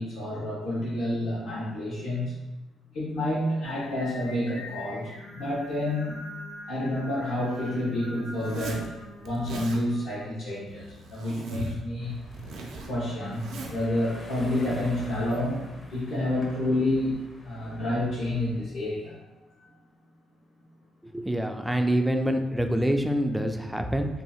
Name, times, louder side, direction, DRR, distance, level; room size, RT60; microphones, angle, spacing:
voice 1, 0.0-2.3 2.9-6.2 6.7-12.1 12.8-17.2 17.4-19.3 19.6-19.7, left 1 dB, 85° left, -9 dB, 1.0 m, -29 dB
Singing, 3.6-10.2, left 1 dB, 65° left, 1.3 m, -44 dB
Zipper (clothing), 8.4-8.9 9.3-9.8 10.7-11.8 12.1-13.9, right 2 dB, 80° right, 0.5 m, -39 dB
sound 1, 12.0-18.6, left 2 dB, 35° left, 0.6 m, -46 dB
voice 2, 21.0-24.1, right 1 dB, 5° right, 5 dB, 0.3 m, -26 dB
2.7 x 2.4 x 4.1 m, 1.0 s
cardioid pair, 90°, 0 cm